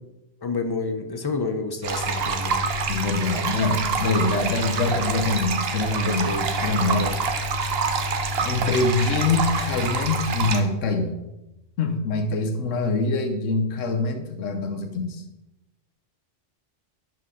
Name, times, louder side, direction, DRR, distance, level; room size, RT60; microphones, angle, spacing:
voice 1, 0.4-2.7 3.3-3.4 6.0-6.4 6.9-7.1, left 3 dB, 35° left, 6 dB, 0.3 m, -29 dB
sound 1, 1.8-10.6, right 3 dB, 60° right, 1.0 m, -26 dB
voice 2, 2.8-7.1 8.4-11.2 11.8-15.2, left 3 dB, 90° left, 6 dB, 1.2 m, -24 dB
11.0 x 4.5 x 3.7 m, 0.97 s
omnidirectional pair, 1.3 m